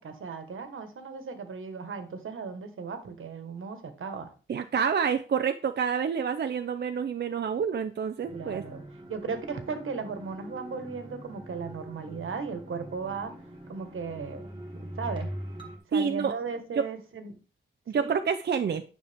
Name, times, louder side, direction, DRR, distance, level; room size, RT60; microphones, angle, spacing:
voice 1, 0.0-4.3 8.3-8.8 9.1-13.3 13.7-15.3 15.9-17.4 17.9-18.1, right 5 dB, 85° right, 7 dB, 1.5 m, -36 dB
voice 2, 4.5-8.6 15.9-16.3 17.9-18.8, right 6 dB, 55° right, 8 dB, 0.5 m, -28 dB
sound 1, 8.2-15.8, equal, 25° right, 1.8 m, -42 dB
9.8 x 6.4 x 3.5 m, 0.35 s
wide cardioid pair, 175°, 21 cm